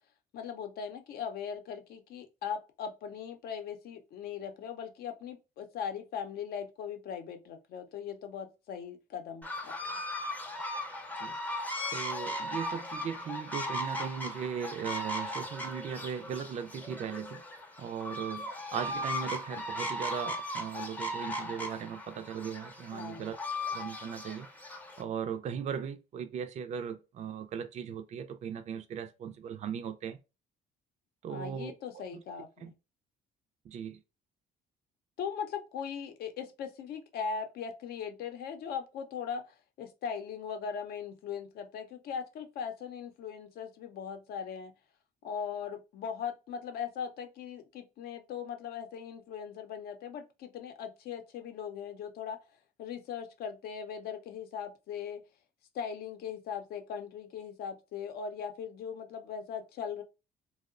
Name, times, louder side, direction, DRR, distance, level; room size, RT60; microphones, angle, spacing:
voice 1, 0.3-9.7 22.9-23.3 31.3-32.7 35.2-44.7 45.2-52.4 52.8-55.2 55.7-60.0, left 7 dB, 65° left, 0.6 m, -39 dB
sound 1, 9.4-25.0, left 1 dB, 10° left, 0.5 m, -37 dB
voice 2, 11.9-17.4 17.8-23.3 23.7-24.5 25.0-30.2 31.2-31.7 32.6-32.7 33.7-34.0, right 7 dB, 45° right, 0.4 m, -38 dB
2.8 x 2.0 x 2.4 m
cardioid pair, 110°, 17 cm